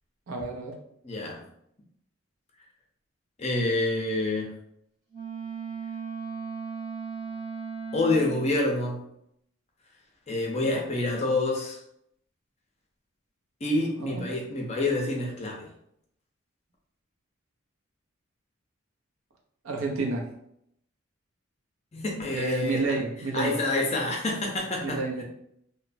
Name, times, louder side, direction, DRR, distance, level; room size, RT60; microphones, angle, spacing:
voice 1, 0.3-0.8 14.0-14.3 19.6-20.3 22.3-23.6 24.8-25.2, right 3 dB, 75° right, 1 dB, 0.6 m, -30 dB
voice 2, 1.0-1.4 3.4-4.5 7.9-9.1 10.3-11.8 13.6-15.7 21.9-22.8 23.3-25.2, left 2 dB, 30° left, 0 dB, 0.5 m, -27 dB
Wind instrument woodwind instrument, 5.1-8.6, right 5 dB, 20° right, 0.9 m, -36 dB
3.1 x 2.1 x 2.5 m, 0.74 s
head